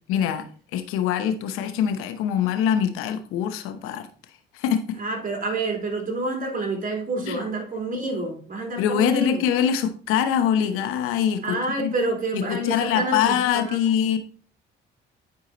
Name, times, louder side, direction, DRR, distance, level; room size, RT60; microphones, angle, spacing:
voice 1, 0.1-4.1 4.5-4.8 7.3-7.4 8.8-11.9 12.3-14.3, left 9 dB, 90° left, 8 dB, 1.0 m, -24 dB
voice 2, 5.0-9.4 11.4-13.4 13.7-13.9, right 2 dB, 40° right, 1 dB, 3.3 m, -28 dB
9.6 x 4.8 x 4.0 m, 0.41 s
supercardioid pair, 75°, 21 cm